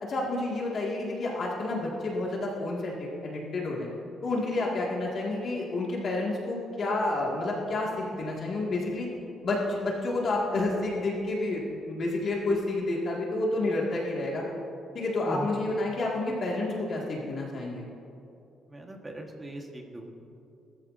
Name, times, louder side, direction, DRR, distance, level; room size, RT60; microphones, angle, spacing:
voice 1, 0.0-3.9 4.2-9.1 9.4-14.4 14.9-17.8, left 2 dB, 45° left, -3 dB, 2.0 m, -30 dB
voice 2, 18.7-20.1, right 1 dB, 15° right, 1 dB, 1.4 m, -39 dB
20.0 x 13.5 x 2.7 m, 2.6 s
cardioid pair, 150°, 0 cm